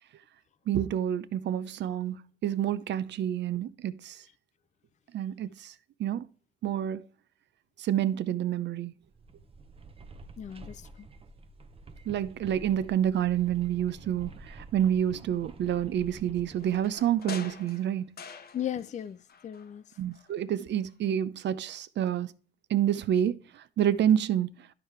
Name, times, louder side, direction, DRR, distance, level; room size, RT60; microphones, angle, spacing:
voice 1, 0.7-4.2 5.1-5.7 6.0-6.2 6.6-7.1 7.8-8.9 12.1-18.1 20.0-22.3 22.7-24.5, right 10 dB, 60° right, 0.6 m, -28 dB
sound 1, 9.0-17.6, right 3 dB, 30° right, 0.7 m, -49 dB
voice 2, 10.4-11.1 18.5-19.8, left 10 dB, 35° left, 0.4 m, -36 dB
sound 2, 16.6-19.0 19.3-20.4 20.7-20.8, left 5 dB, 50° left, 0.9 m, -45 dB
12.0 x 4.9 x 3.2 m
cardioid pair, 90°, 20 cm